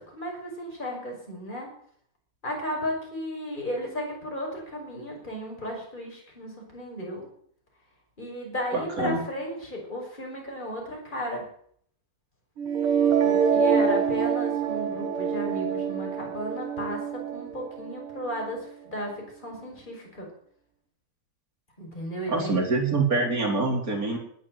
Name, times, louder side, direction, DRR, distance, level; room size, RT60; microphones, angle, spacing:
voice 1, 0.0-1.7 2.4-7.3 8.2-11.4 13.2-19.1 19.4-20.3 21.8-22.6, left 1 dB, 20° left, -1 dB, 6.0 m, -34 dB
voice 2, 8.7-9.2 22.3-24.2, right 3 dB, 40° right, 1 dB, 4.4 m, -25 dB
sound 1, 12.6-18.6, right 7 dB, 85° right, 2.6 m, -26 dB
19.5 x 9.1 x 8.0 m, 0.62 s
omnidirectional pair, 2.4 m